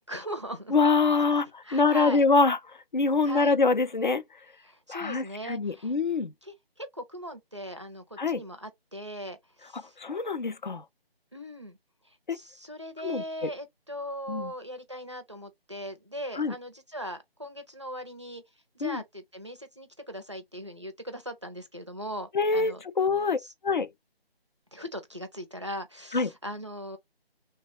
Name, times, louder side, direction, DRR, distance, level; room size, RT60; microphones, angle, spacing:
voice 1, 0.1-0.8 1.2-2.2 3.2-3.5 4.6-5.9 6.4-10.0 11.3-11.8 12.3-18.4 18.7-22.8 23.4-23.5 24.7-27.0, equal, 30° right, 0.5 m, -39 dB
voice 2, 0.7-2.6 2.9-4.2 4.9-6.3 8.2-8.4 9.7-10.8 12.3-12.4 13.0-13.5 14.3-14.5 16.4-16.5 18.8-19.0 22.3-23.4 23.6-23.9 26.1-26.3, left 4 dB, 50° left, 0.4 m, -25 dB
3.2 x 2.1 x 4.2 m
figure-of-eight pair, 160°, 31 cm